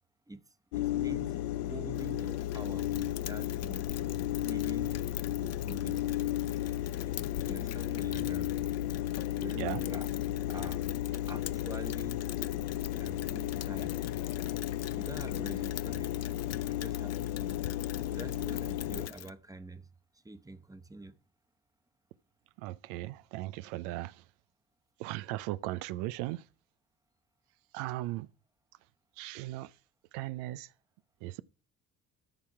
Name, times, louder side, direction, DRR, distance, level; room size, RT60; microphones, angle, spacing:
sound 1, 0.7-19.1, left 13 dB, 85° left, 0.5 m, -34 dB
voice 1, 0.7-3.9 4.4-4.9 5.4-6.0 7.5-8.6 9.4-10.1 10.5-10.8 11.3-12.3 13.0-14.0 14.9-16.1 16.7-17.6 18.1-19.9 20.2-21.2, right 2 dB, 10° right, 1.0 m, -46 dB
Rain, 2.0-19.3, left 12 dB, 40° left, 0.5 m, -46 dB
voice 2, 22.6-24.3 25.0-26.5 27.7-28.3 29.2-29.8 30.1-30.7 31.2-31.4, right 17 dB, 85° right, 0.6 m, -37 dB
13.0 x 5.9 x 4.7 m
hypercardioid pair, 55°, 43 cm